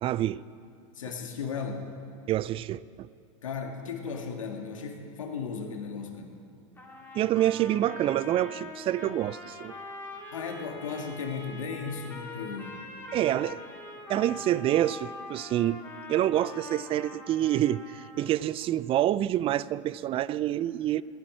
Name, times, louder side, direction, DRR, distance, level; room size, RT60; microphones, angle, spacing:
voice 1, 0.0-0.4 2.3-3.1 7.1-9.8 13.1-13.6 14.1-15.8 16.1-21.0, right 13 dB, 35° right, 0.4 m, -27 dB
voice 2, 0.9-1.9 3.4-6.4 10.3-12.9, left 5 dB, 85° left, 1.9 m, -36 dB
sound 1, 6.8-18.4, left 2 dB, 15° left, 2.9 m, -44 dB
16.5 x 11.0 x 7.6 m
hypercardioid pair, 95°, 16 cm